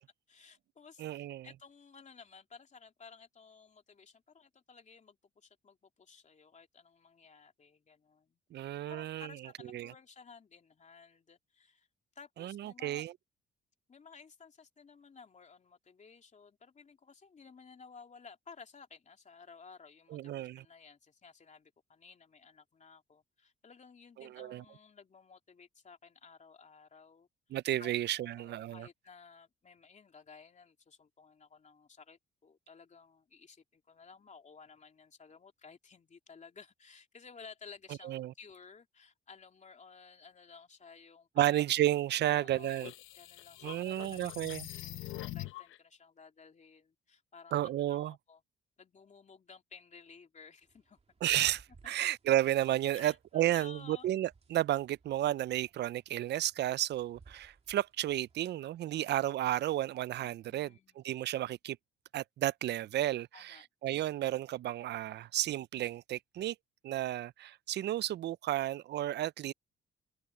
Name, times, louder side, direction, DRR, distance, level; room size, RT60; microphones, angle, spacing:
voice 1, 0.3-11.9 12.1-13.1 13.9-27.3 27.8-41.5 42.3-42.9 43.1-48.4 48.8-51.0 51.8-51.9 52.9-54.1 60.2-61.0 63.3-63.7, left 5 dB, 35° left, 2.8 m, -56 dB
voice 2, 1.0-1.5 8.5-9.3 9.7-9.9 12.4-13.1 20.1-20.6 24.2-24.6 27.5-28.9 38.0-38.3 41.4-42.9 43.6-44.7 47.5-48.1 51.2-61.8 62.1-66.6 66.8-69.5, right 13 dB, 60° right, 0.4 m, -32 dB
sound 1, 42.3-45.8, left 16 dB, 85° left, 0.9 m, -44 dB
sound 2, 50.6-58.4, right 4 dB, 30° right, 2.9 m, -63 dB
open air
cardioid pair, 90°, 20 cm